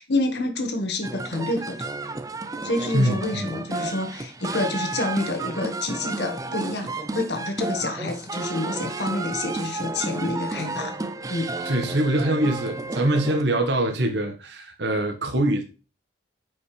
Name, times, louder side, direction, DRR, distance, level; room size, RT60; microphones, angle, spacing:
voice 1, 0.0-2.0 2.6-11.0 11.3-11.5, left 2 dB, 65° left, 1.6 m, -28 dB
sound 1, 1.0-13.4, right 3 dB, 20° right, 0.6 m, -32 dB
voice 2, 2.9-3.5 11.6-15.6, right 1 dB, 70° right, 1.6 m, -23 dB
9.5 x 5.3 x 3.3 m
head